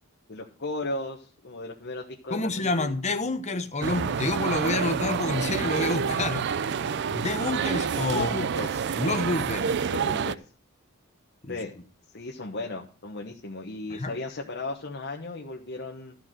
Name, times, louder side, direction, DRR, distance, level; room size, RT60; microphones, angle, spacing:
voice 1, 0.3-2.9 8.1-8.9 9.9-10.4 11.5-11.7 12.1-16.1, left 2 dB, 50° left, 1.2 m, -35 dB
voice 2, 2.3-6.6 6.8-8.3 9.0-9.8 11.4-11.6 13.9-14.2, left 2 dB, 30° left, 1.0 m, -28 dB
sound 1, 3.8-10.3, right 6 dB, 50° right, 0.4 m, -28 dB
13.5 x 4.8 x 7.6 m
head